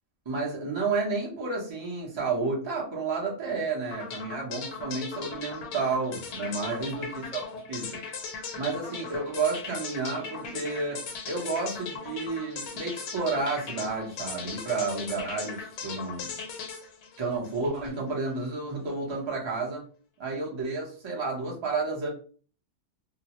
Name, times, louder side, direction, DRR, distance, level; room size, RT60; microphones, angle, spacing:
voice 1, 0.3-7.1 7.3-8.0 8.5-16.3 17.2-19.8 20.2-22.1, right 4 dB, 40° right, -3 dB, 0.4 m, -31 dB
sound 1, 3.9-18.0, left 5 dB, 85° left, 1.3 m, -38 dB
2.8 x 2.0 x 2.9 m, 0.40 s
omnidirectional pair, 1.8 m